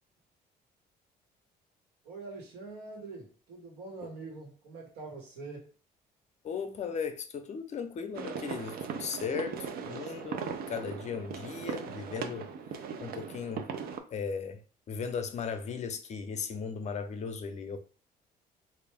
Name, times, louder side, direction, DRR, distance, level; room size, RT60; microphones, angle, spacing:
voice 1, 2.0-5.7, right 3 dB, 90° right, 1.5 m, -44 dB
voice 2, 6.4-10.4 10.7-12.5 13.0-13.6 14.1-14.6 14.9-17.8, left 6 dB, 40° left, 0.6 m, -36 dB
sound 1, 8.1-14.0, right 6 dB, 60° right, 0.5 m, -39 dB
3.4 x 2.5 x 3.4 m
cardioid pair, 110°, 17 cm